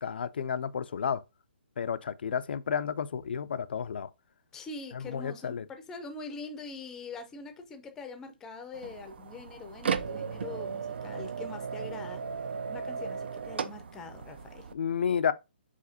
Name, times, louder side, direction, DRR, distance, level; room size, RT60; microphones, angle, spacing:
voice 1, 0.0-1.2 1.8-4.1 5.1-5.6 14.7-15.3, left 7 dB, 65° left, 0.4 m, -31 dB
voice 2, 4.5-12.2 12.7-14.7, left 3 dB, 10° left, 0.5 m, -43 dB
sound 1, 8.7-14.7, right 6 dB, 75° right, 0.5 m, -36 dB
4.9 x 4.1 x 2.7 m
hypercardioid pair, 165°, 6 cm